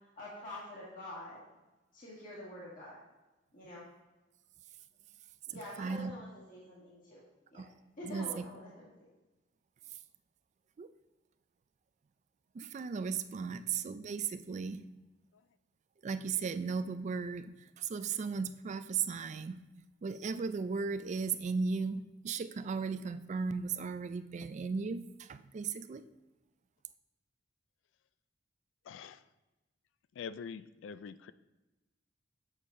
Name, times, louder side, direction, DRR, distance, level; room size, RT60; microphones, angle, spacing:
voice 1, 0.2-1.4 1.9-3.0 3.5-3.8 5.5-7.2 7.5-7.6 8.0-8.9, left 1 dB, 45° left, -9 dB, 1.8 m, -46 dB
voice 2, 5.8-6.1 7.5-7.7 8.0-8.5 10.8-10.9 12.5-14.8 16.0-19.6 20.0-26.0, right 5 dB, 40° right, 12 dB, 0.3 m, -36 dB
voice 3, 28.9-29.2 30.2-31.3, left 6 dB, 85° left, 15 dB, 0.3 m, -44 dB
7.3 x 6.4 x 2.6 m, 1.1 s
head